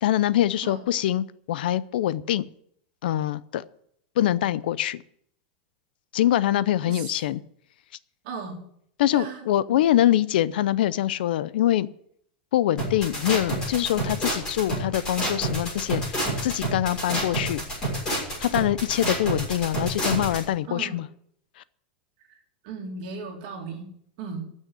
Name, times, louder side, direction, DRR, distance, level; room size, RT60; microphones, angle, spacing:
voice 1, 0.0-2.4 3.0-3.6 4.2-5.0 6.1-7.4 9.0-11.9 12.5-17.6 18.4-21.1, left 12 dB, 75° left, 18 dB, 0.6 m, -24 dB
voice 2, 6.9-7.2 8.2-8.6 9.1-9.5 20.7-21.0 22.3-22.4 22.6-24.5, right 4 dB, 50° right, 0 dB, 2.6 m, -36 dB
sound 1, 12.8-20.4, right 1 dB, 15° left, 6.5 m, -28 dB
15.0 x 6.4 x 8.3 m, 0.68 s
supercardioid pair, 170°, 5 cm